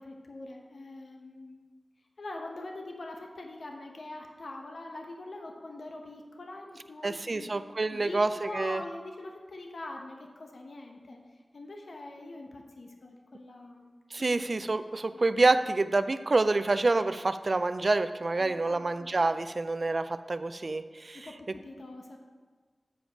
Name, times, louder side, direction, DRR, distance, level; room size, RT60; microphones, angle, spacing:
voice 1, 0.0-1.6 2.2-7.5 7.9-11.2 11.5-13.9 14.2-14.8 15.1-15.2 18.4-19.1 21.1-22.2, left 2 dB, 80° left, 2 dB, 0.9 m, -43 dB
voice 2, 7.0-8.8 14.1-21.3, right 3 dB, 55° right, 12 dB, 0.3 m, -27 dB
8.5 x 5.1 x 5.1 m, 1.4 s
wide cardioid pair, 80°, 0 cm